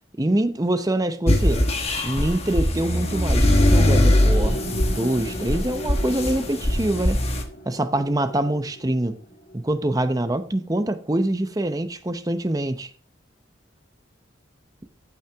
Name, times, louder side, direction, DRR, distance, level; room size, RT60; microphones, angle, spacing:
voice 1, 0.2-1.6 2.0-4.6 4.9-7.2 7.7-9.2 9.5-12.9, right 1 dB, 20° right, 0.7 m, -25 dB
sound 1, 1.3-7.4, left 1 dB, 30° left, 1.3 m, -20 dB
sound 2, 3.4-9.6, right 1 dB, 50° left, 2.1 m, -35 dB
15.0 x 5.8 x 3.5 m
head